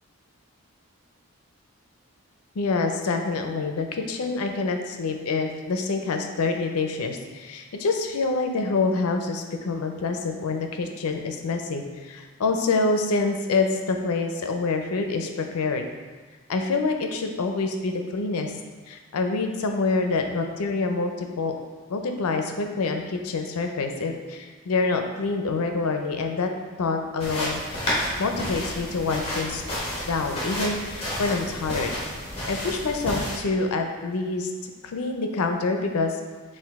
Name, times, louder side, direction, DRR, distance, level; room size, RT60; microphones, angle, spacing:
voice 1, 2.6-15.9 16.5-18.5 18.9-21.5 21.9-26.5 26.8-27.6 28.2-29.6 30.1-32.0 32.5-34.5 34.8-36.1, left 3 dB, 80° left, 4 dB, 0.5 m, -26 dB
sound 1, 27.2-33.4, left 1 dB, 25° left, 1.1 m, -31 dB
5.8 x 2.5 x 3.5 m, 1.4 s
head